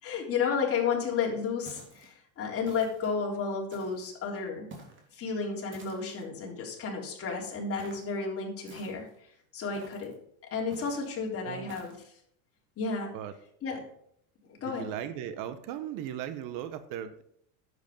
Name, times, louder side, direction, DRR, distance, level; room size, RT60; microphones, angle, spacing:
voice 1, 0.0-4.7 5.1-9.1 9.5-10.1 10.5-11.9 12.8-13.1 13.6-13.8 14.5-14.9, left 5 dB, 35° left, -1 dB, 3.8 m, -32 dB
sound 1, 1.7-2.1 2.6-3.1 3.7-4.1 4.7-5.1 5.7-6.2 7.8-8.1 8.7-9.2 9.7-10.1 10.7-11.1 11.7-12.0, right 2 dB, 30° right, 3.2 m, -50 dB
voice 2, 11.3-11.7 13.1-13.3 14.6-17.2, right 10 dB, 55° right, 12 dB, 1.1 m, -37 dB
10.5 x 8.1 x 5.4 m, 0.69 s
supercardioid pair, 125°, 41 cm